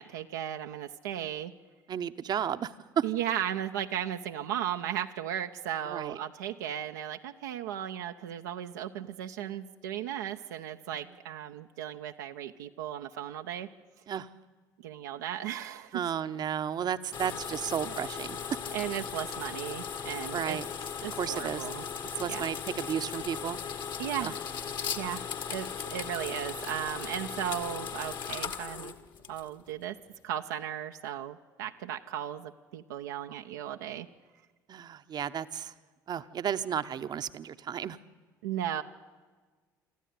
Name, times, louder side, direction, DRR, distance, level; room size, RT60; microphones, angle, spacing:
voice 1, 0.0-1.5 3.0-13.7 14.8-16.0 17.8-17.9 18.7-20.6 21.0-21.8 22.3-22.6 24.0-24.4 24.9-28.9 29.3-30.0 30.2-34.1 38.4-38.8, right 10 dB, 75° right, 5 dB, 0.7 m, -36 dB
voice 2, 1.9-3.1 5.9-6.2 14.1-14.3 15.9-18.6 20.3-20.7 21.2-21.6 22.1-23.6 24.2-24.3 34.7-35.7 36.1-38.0, right 8 dB, 45° right, 11 dB, 0.9 m, -33 dB
sound 1, 17.1-29.7, left 7 dB, 50° left, 1.6 m, -37 dB
25.5 x 13.5 x 9.5 m, 1.4 s
figure-of-eight pair, 55°, 10 cm